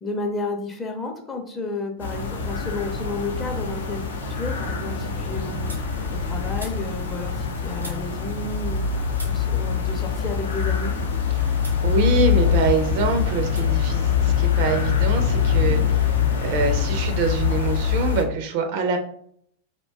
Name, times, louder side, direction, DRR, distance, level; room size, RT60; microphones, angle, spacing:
voice 1, 0.0-4.0 4.3-5.7 6.2-8.9 9.3-10.9, left 2 dB, 15° left, 2 dB, 0.6 m, -31 dB
sound 1, 2.0-18.2, left 7 dB, 65° left, 0.5 m, -24 dB
sound 2, 5.6-8.9 9.1-11.2 11.6-11.9 12.2-13.0 13.5-13.7 13.9-15.0, right 1 dB, 85° right, 0.8 m, -46 dB
voice 2, 11.3-16.1 16.4-19.0, right 4 dB, 45° right, 6 dB, 0.4 m, -25 dB
2.5 x 2.2 x 3.3 m, 0.64 s
figure-of-eight pair, 90°, 0 cm